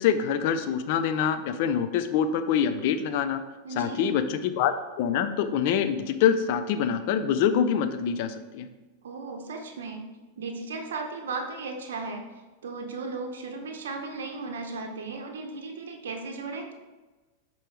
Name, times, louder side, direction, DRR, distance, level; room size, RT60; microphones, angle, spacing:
voice 1, 0.0-3.4 3.8-8.7, left 8 dB, 60° left, 10 dB, 0.5 m, -25 dB
voice 2, 3.6-4.2 9.0-10.0 10.4-12.2 12.6-16.7, right 3 dB, 85° right, 3 dB, 0.8 m, -36 dB
5.4 x 4.6 x 4.5 m, 1.2 s
hypercardioid pair, 120°, 0 cm